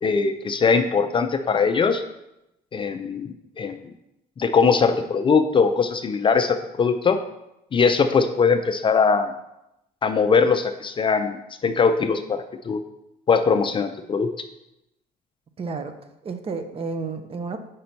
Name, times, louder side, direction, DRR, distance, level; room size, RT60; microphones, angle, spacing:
voice 1, 0.0-2.0 2.7-3.8 4.4-7.2 7.7-9.3 10.0-12.8 13.3-14.3, left 5 dB, 30° left, 8 dB, 0.4 m, -21 dB
voice 2, 15.6-15.9 16.2-17.6, right 4 dB, 35° right, 8 dB, 0.6 m, -31 dB
5.2 x 4.1 x 5.9 m, 0.87 s
cardioid pair, 110°, 17 cm